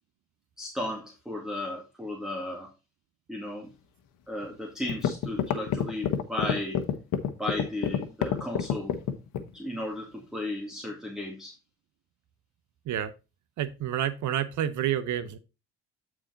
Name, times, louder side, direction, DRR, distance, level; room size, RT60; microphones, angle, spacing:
voice 1, 0.6-2.7 3.3-3.7 4.3-6.8 7.4-9.0 9.5-11.5, left 1 dB, ahead, 0 dB, 1.9 m, -35 dB
sound 1, 4.4-4.5 4.9-9.5, left 9 dB, 65° left, 1.3 m, -27 dB
voice 2, 13.6-15.4, right 10 dB, 60° right, 13 dB, 1.0 m, -29 dB
8.7 x 4.8 x 4.0 m, 0.28 s
supercardioid pair, 75°, 33 cm